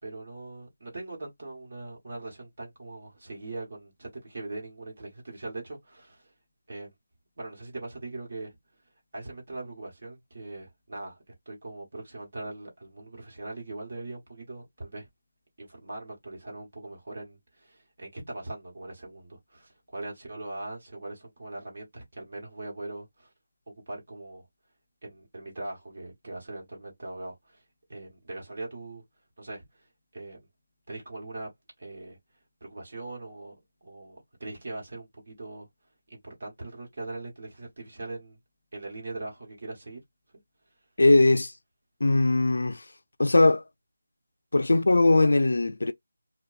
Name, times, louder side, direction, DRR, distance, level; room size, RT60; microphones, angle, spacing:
voice 1, 0.0-6.3 6.7-6.9 7.4-8.6 9.1-15.1 15.6-23.3 23.7-24.4 25.0-27.6 27.9-29.0 29.4-29.9 30.1-30.5 30.9-31.5 31.8-32.2 32.6-35.7 36.1-38.4 38.7-40.0, right 2 dB, 35° right, 1.1 m, -41 dB
voice 2, 41.0-41.5 42.0-42.8 43.2-43.6 44.5-45.9, left 2 dB, 70° left, 0.3 m, -20 dB
2.7 x 2.2 x 2.3 m
figure-of-eight pair, 180°, 0 cm